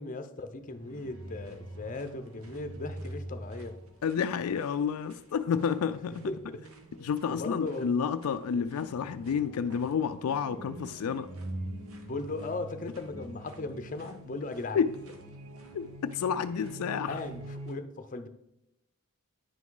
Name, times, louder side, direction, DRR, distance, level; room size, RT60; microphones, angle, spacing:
voice 1, 0.0-3.8 6.3-6.6 7.3-7.9 8.6-8.7 12.1-14.8 17.1-18.3, left 3 dB, 35° left, 0.6 m, -37 dB
sound 1, 0.6-17.7, right 1 dB, 70° right, 1.2 m, -45 dB
voice 2, 4.0-6.3 7.0-11.3 14.7-14.9 15.7-17.2, left 7 dB, 75° left, 0.3 m, -30 dB
9.8 x 6.0 x 3.8 m
head